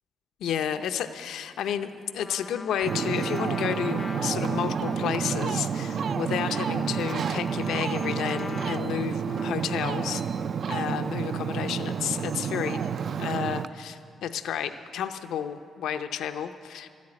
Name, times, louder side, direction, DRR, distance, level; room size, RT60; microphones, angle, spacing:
voice 1, 0.4-10.2 10.7-12.8 13.2-16.9, left 9 dB, 85° left, 8 dB, 0.6 m, -31 dB
Trumpet, 2.2-10.3, left 4 dB, 30° left, 0.4 m, -42 dB
Ocean, 2.8-13.7, right 7 dB, 50° right, 0.4 m, -30 dB
13.5 x 8.3 x 9.7 m, 2.2 s
cardioid pair, 140°, 0 cm